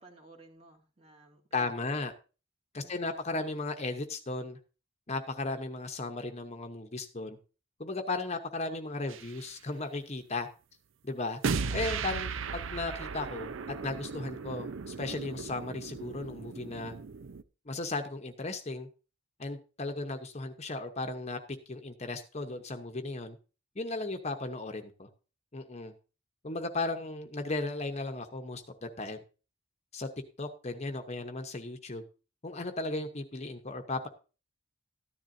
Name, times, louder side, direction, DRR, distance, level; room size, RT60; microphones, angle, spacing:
voice 1, 0.0-2.0 2.8-3.2, right 2 dB, 30° right, 0 dB, 2.4 m, -56 dB
voice 2, 1.5-2.1 2.7-4.6 5.1-7.4 7.8-10.5 11.0-11.4 11.7-13.5 13.8-16.9 17.7-18.9 19.4-21.4 21.7-23.4 23.8-25.1 25.5-25.9 26.4-29.2 29.9-30.1 30.4-32.0 32.4-34.1, left 3 dB, 35° left, 7 dB, 0.9 m, -36 dB
sound 1, 9.1-9.4 11.4-17.4, right 5 dB, 75° right, 0.6 m, -36 dB
13.5 x 10.5 x 2.7 m, 0.34 s
head